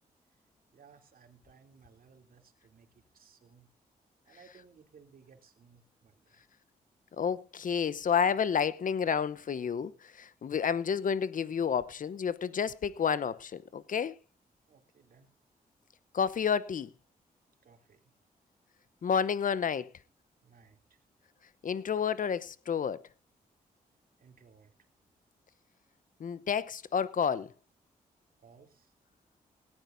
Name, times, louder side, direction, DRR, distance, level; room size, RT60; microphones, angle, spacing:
voice 1, 0.7-3.7 4.2-6.4 14.7-15.3 17.6-18.1 20.4-21.0 24.2-24.9 28.4-28.9, right 5 dB, 65° right, 3.0 m, -60 dB
voice 2, 7.2-14.2 16.1-16.9 19.0-19.9 21.6-23.0 26.2-27.5, left 7 dB, 55° left, 0.8 m, -30 dB
18.5 x 14.5 x 2.7 m
cardioid pair, 60°, 16 cm